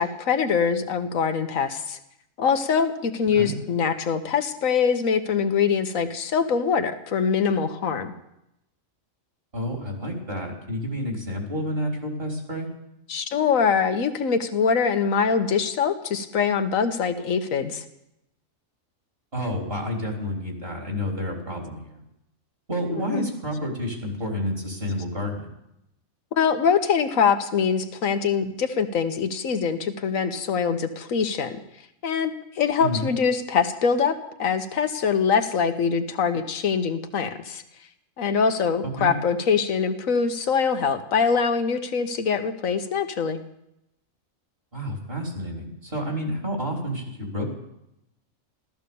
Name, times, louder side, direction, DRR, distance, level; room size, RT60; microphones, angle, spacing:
voice 1, 0.0-2.0 2.4-8.1 13.1-17.8 23.0-23.2 26.3-31.6 32.0-37.6 38.2-43.4, left 6 dB, 85° left, 7 dB, 1.5 m, -23 dB
voice 2, 9.5-12.7 19.3-22.0 22.7-25.5 32.8-33.1 38.8-39.1 44.7-47.5, equal, 45° right, 0 dB, 3.9 m, -29 dB
15.0 x 13.5 x 6.9 m, 0.83 s
omnidirectional pair, 1.4 m